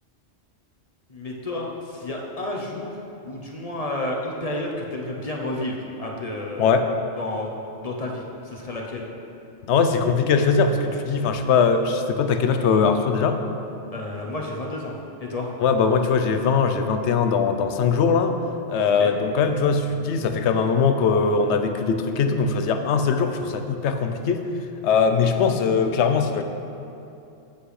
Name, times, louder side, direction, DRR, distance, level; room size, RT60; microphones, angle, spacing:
voice 1, 1.1-6.6 7.2-7.5 7.8-9.1 13.9-14.9 15.2-15.5 19.0-19.1, left 1 dB, 40° left, -1 dB, 0.7 m, -31 dB
voice 2, 9.7-13.4 15.6-18.3 18.7-24.4 24.8-26.4, left 5 dB, 80° left, 7 dB, 0.9 m, -21 dB
8.1 x 8.1 x 3.2 m, 2.7 s
omnidirectional pair, 1.2 m